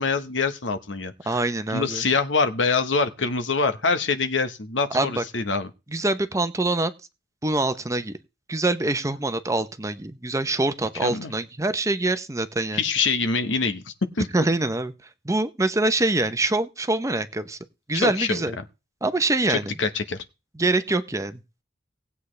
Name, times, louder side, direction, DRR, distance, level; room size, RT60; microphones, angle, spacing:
voice 1, 0.0-1.4 1.7-5.7 11.0-11.3 12.7-13.8 14.2-14.3 17.9-18.4 19.5-20.2, left 4 dB, 75° left, 1.2 m, -25 dB
voice 2, 1.3-2.0 4.9-5.2 5.9-6.9 7.4-8.2 8.5-12.8 14.3-14.9 15.2-17.6 17.9-18.6 19.0-19.7 20.6-21.4, right 2 dB, 15° right, 0.7 m, -24 dB
18.5 x 8.2 x 3.3 m
head